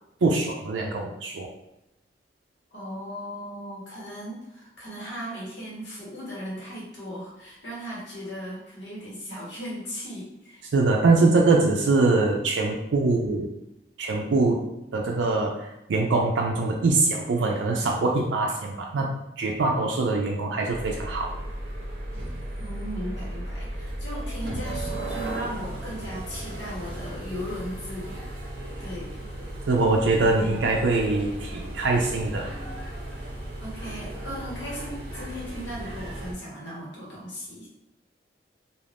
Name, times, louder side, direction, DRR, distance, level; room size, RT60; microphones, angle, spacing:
voice 1, 0.2-1.5 10.7-13.5 14.0-14.7 14.9-21.4 29.7-32.5, right 3 dB, 80° right, 0 dB, 0.4 m, -23 dB
voice 2, 2.7-10.7 11.1-11.4 22.6-28.2 28.8-29.1 33.6-37.7, equal, 75° left, -6 dB, 1.2 m, -37 dB
sound 1, 20.7-36.3, right 1 dB, 55° right, 0.7 m, -35 dB
2.4 x 2.4 x 3.3 m, 0.88 s
head